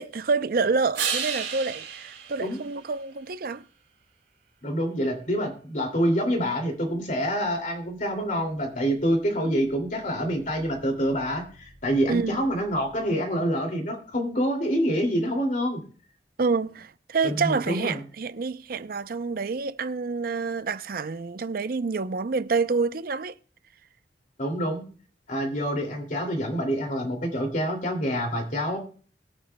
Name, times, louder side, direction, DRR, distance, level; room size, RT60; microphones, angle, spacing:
voice 1, 0.0-3.6 12.1-12.4 16.4-23.3, right 4 dB, 55° right, 0.5 m, -28 dB
sound 1, 0.9-3.5 9.3-13.2, right 7 dB, 90° right, 2.7 m, -36 dB
voice 2, 4.6-15.8 17.2-18.0 24.4-24.8 25.3-28.8, equal, 45° left, 2.4 m, -26 dB
21.5 x 8.7 x 2.2 m
head